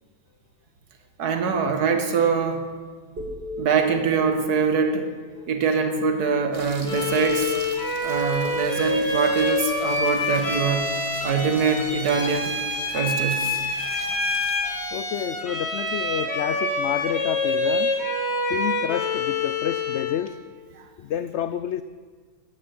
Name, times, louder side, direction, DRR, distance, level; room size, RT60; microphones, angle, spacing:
voice 1, 1.2-2.7 3.6-5.1 5.5-7.6 8.0-10.9 11.2-12.6 12.9-13.6 20.8-20.9, right 5 dB, 75° right, 6 dB, 1.8 m, -23 dB
sound 1, 3.2-7.3, left 2 dB, 40° right, 2.3 m, -40 dB
sound 2, 6.5-14.8, right 2 dB, 20° right, 1.5 m, -43 dB
Bowed string instrument, 6.8-20.2, left 2 dB, 40° left, 2.3 m, -26 dB
voice 2, 14.9-17.9 18.5-20.4 21.0-21.8, left 10 dB, 75° left, 12 dB, 0.6 m, -29 dB
13.5 x 10.0 x 7.6 m, 1.6 s
omnidirectional pair, 1.7 m